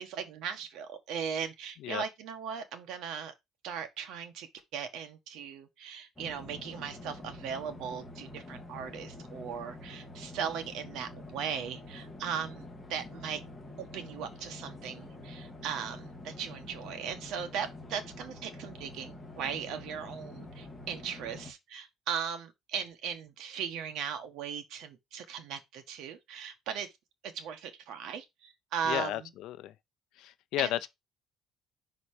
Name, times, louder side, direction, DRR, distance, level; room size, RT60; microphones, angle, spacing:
voice 1, 0.0-3.3 3.6-4.5 4.7-13.4 13.8-26.9 27.2-29.3 30.6-30.9, right 7 dB, 65° right, 1.3 m, -38 dB
sound 1, 6.2-21.5, left 2 dB, 10° left, 1.9 m, -47 dB
voice 2, 28.8-29.7 30.2-30.9, left 13 dB, 70° left, 0.6 m, -33 dB
5.6 x 3.9 x 4.9 m
cardioid pair, 165°, 0 cm